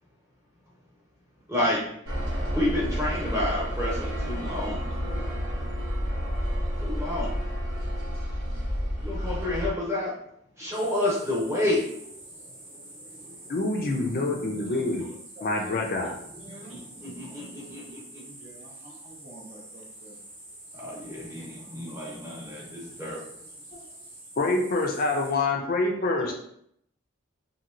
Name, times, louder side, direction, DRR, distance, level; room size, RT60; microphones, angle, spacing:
voice 1, 1.5-1.8 2.5-4.8 6.8-7.3 9.0-10.1 10.6-11.9 13.3-14.2 14.7-14.9 16.5-18.0 20.7-23.2, left 1 dB, 15° right, -6 dB, 0.9 m, -30 dB
sound 1, 2.1-9.7, equal, 80° right, 0.9 m, -30 dB
voice 2, 5.0-5.3 14.5-17.1 18.2-20.2 26.1-26.3, right 2 dB, 30° right, -2 dB, 0.5 m, -48 dB
sound 2, 10.7-25.3, right 1 dB, 65° right, 1.1 m, -47 dB
voice 3, 13.5-15.1 15.4-16.1 24.4-26.3, left 2 dB, 45° left, 1 dB, 0.4 m, -26 dB
2.9 x 2.7 x 2.5 m, 0.70 s
head